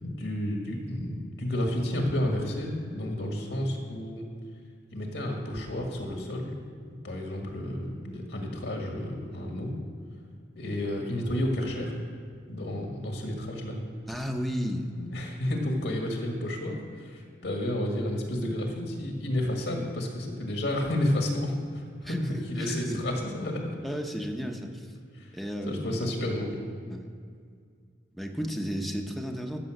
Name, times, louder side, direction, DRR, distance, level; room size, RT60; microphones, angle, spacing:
voice 1, 0.0-4.2 4.9-6.5 7.0-9.7 10.6-11.9 12.5-13.8 15.0-16.8 17.0-22.2 22.5-23.8 25.7-26.6, left 1 dB, 75° left, 1 dB, 1.9 m, -31 dB
voice 2, 14.1-14.9 22.0-23.0 23.8-24.9 25.3-25.9 26.9-27.1 28.1-29.6, equal, ahead, 2 dB, 0.8 m, -33 dB
13.5 x 6.9 x 6.5 m, 2.2 s
head